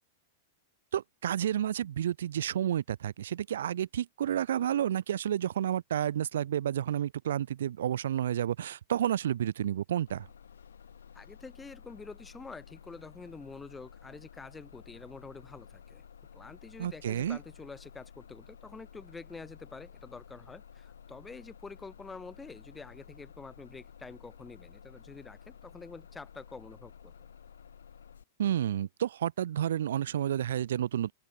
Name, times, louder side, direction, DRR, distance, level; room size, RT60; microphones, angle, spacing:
voice 1, 0.9-10.3 16.8-17.4 28.4-31.1, right 10 dB, 75° right, 0.4 m, -30 dB
Bus, 10.1-28.2, left 7 dB, 90° left, 5.2 m, -53 dB
voice 2, 11.1-16.0 16.3-27.1, left 4 dB, 10° left, 1.3 m, -47 dB
open air
hypercardioid pair, 120°, 0 cm